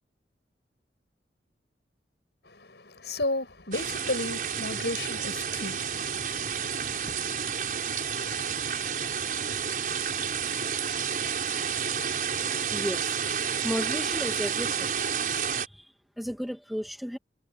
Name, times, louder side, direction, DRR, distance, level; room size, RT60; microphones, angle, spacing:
voice 1, 2.4-7.1, left 2 dB, 70° left, 6.7 m, -34 dB
sound 1, 3.7-15.7, right 7 dB, 50° right, 5.4 m, -30 dB
voice 2, 12.7-13.2 13.6-14.9 15.5-15.9 16.2-17.2, equal, ahead, 1.5 m, -34 dB
head